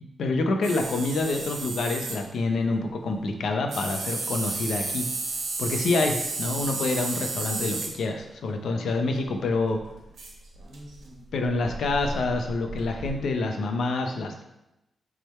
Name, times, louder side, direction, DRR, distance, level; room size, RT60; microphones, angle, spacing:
voice 1, 0.2-5.1 5.6-9.8 11.3-14.4, left 3 dB, 85° left, 4 dB, 0.8 m, -27 dB
sound 1, 0.6-2.2 3.7-7.9 9.2-9.3 9.5-13.3, right 3 dB, 85° right, 1.6 m, -33 dB
6.3 x 3.8 x 4.3 m, 0.92 s
wide cardioid pair, 145°, 0 cm